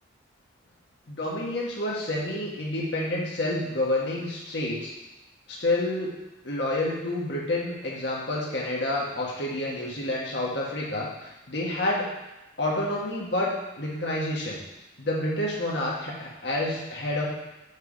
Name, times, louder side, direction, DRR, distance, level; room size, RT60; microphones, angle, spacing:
voice 1, 1.1-4.9 5.5-6.1 6.4-12.1 12.6-13.5 13.8-14.6 15.0-17.3, left 1 dB, 60° left, -4 dB, 1.4 m, -29 dB
6.5 x 3.5 x 4.9 m, 1.0 s
head